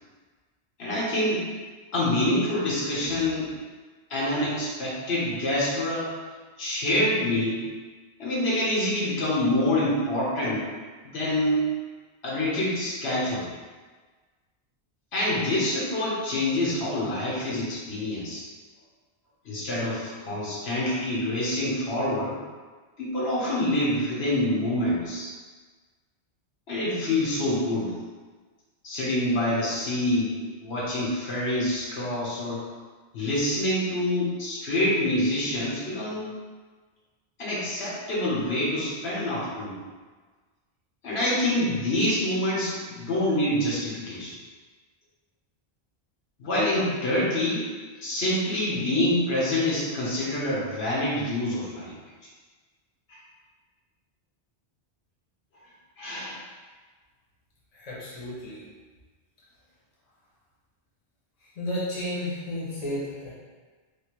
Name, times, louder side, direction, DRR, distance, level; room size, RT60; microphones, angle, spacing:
voice 1, 0.8-1.5 1.9-3.5 4.1-6.1 6.6-7.6 8.2-10.7 11.0-11.7 12.2-13.4 15.1-18.4 19.4-22.4 23.0-25.3 26.7-27.9 28.8-32.6 33.1-36.4 37.4-39.8 41.0-44.3 46.4-47.7 48.0-52.0 53.1-53.2 56.0-56.4, left 1 dB, 75° left, -7 dB, 1.2 m, -26 dB
voice 2, 57.7-58.7 61.4-63.4, left 1 dB, 40° left, -7 dB, 0.9 m, -33 dB
3.4 x 2.7 x 2.9 m, 1.4 s
omnidirectional pair, 1.1 m